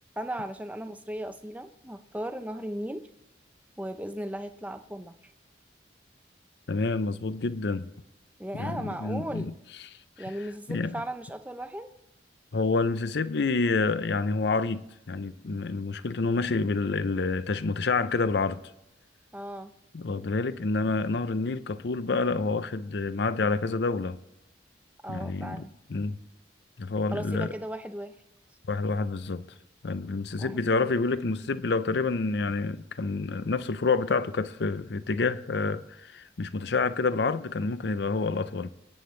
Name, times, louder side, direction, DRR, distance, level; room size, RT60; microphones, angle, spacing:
voice 1, 0.2-3.1 3.8-5.1 8.4-9.5 10.2-11.9 19.3-19.7 25.0-25.7 27.1-28.1 30.4-30.9, right 1 dB, 10° right, 0.6 m, -36 dB
voice 2, 6.7-7.9 8.5-9.5 9.8-9.9 10.7-10.9 12.5-18.6 19.9-24.2 25.1-26.2 26.8-27.5 28.7-29.4 29.8-38.7, left 3 dB, 65° left, 0.5 m, -28 dB
25.5 x 9.4 x 3.2 m
head